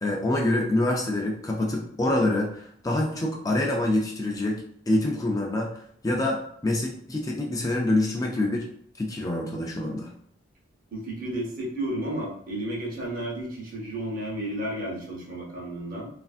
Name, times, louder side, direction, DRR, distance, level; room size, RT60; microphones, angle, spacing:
voice 1, 0.0-8.7 9.0-10.1, left 1 dB, 20° left, -1 dB, 0.4 m, -26 dB
voice 2, 10.9-16.1, right 1 dB, 45° right, -3 dB, 0.9 m, -32 dB
3.2 x 2.5 x 2.4 m, 0.65 s
head